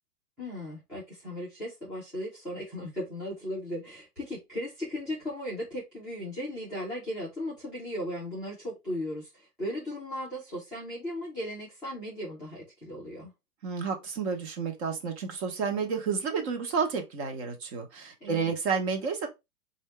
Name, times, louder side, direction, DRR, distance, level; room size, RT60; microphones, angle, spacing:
voice 1, 0.4-13.3 18.2-18.5, equal, ahead, 0.4 m, -37 dB
voice 2, 13.6-19.3, right 5 dB, 40° right, 1.2 m, -30 dB
4.2 x 2.7 x 3.3 m
hypercardioid pair, 140°, 47 cm